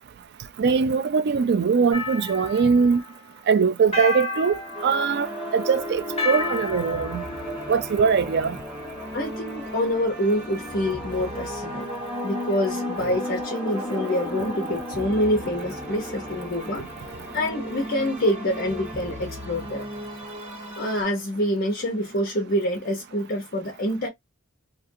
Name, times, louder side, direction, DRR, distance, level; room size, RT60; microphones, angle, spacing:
voice 1, 0.6-3.0 3.5-5.3 5.5-7.2 7.7-8.6, right 5 dB, 50° right, 0.3 m, -21 dB
sound 1, 1.9-3.2 3.9-5.5 6.2-7.7, left 3 dB, 30° left, 1.0 m, -31 dB
sound 2, 3.8-17.9, left 1 dB, 5° left, 0.5 m, -36 dB
sound 3, 4.7-21.1, equal, 30° right, 1.8 m, -37 dB
voice 2, 9.1-11.9 12.2-16.9 17.3-19.8 20.8-24.1, equal, 45° left, 0.8 m, -26 dB
2.8 x 2.5 x 2.6 m
head